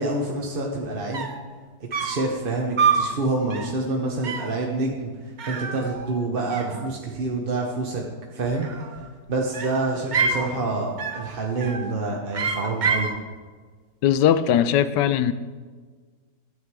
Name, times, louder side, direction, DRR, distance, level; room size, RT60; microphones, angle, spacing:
voice 1, 0.0-1.3 1.8-8.0 8.3-8.7 9.3-13.1, right 3 dB, 35° right, 1.0 m, -27 dB
sound 1, 0.8-0.9 1.1-1.5 1.9-2.3 2.8-3.1 3.5-3.8 4.2-4.6 5.4-6.2 6.5-7.2 8.4-9.1 9.5-10.5 11.0-11.3 11.6-12.0 12.3-13.2, right 5 dB, 70° right, 0.4 m, -27 dB
voice 2, 14.0-15.3, left 10 dB, 75° left, 1.2 m, -19 dB
12.5 x 9.3 x 4.8 m
omnidirectional pair, 1.9 m